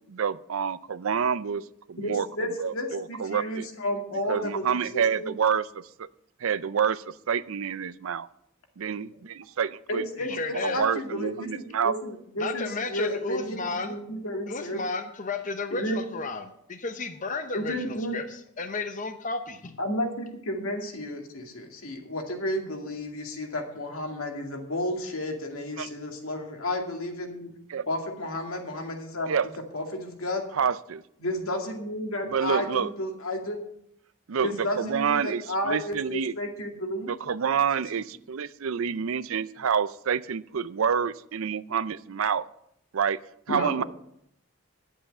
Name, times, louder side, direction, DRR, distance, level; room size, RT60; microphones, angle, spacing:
voice 1, 0.1-3.7 4.3-6.1 6.4-8.3 8.8-10.0 10.3-11.9 25.8-25.9 27.7-27.9 29.3-29.5 30.5-31.0 32.2-32.9 34.3-36.3 37.1-42.5 42.9-43.2 43.5-43.8, right 7 dB, 70° right, 16 dB, 0.5 m, -28 dB
voice 2, 2.0-4.8 5.2-5.3 9.9-14.8 15.7-16.0 17.5-18.2 19.8-27.5 27.9-29.4 29.7-30.5 31.2-33.6 34.3-37.1 43.5-43.7, left 1 dB, 75° left, 3 dB, 2.3 m, -32 dB
voice 3, 10.2-10.8 12.4-14.0 14.5-19.8, left 3 dB, 35° left, 8 dB, 0.7 m, -33 dB
11.5 x 7.7 x 6.6 m, 0.75 s
head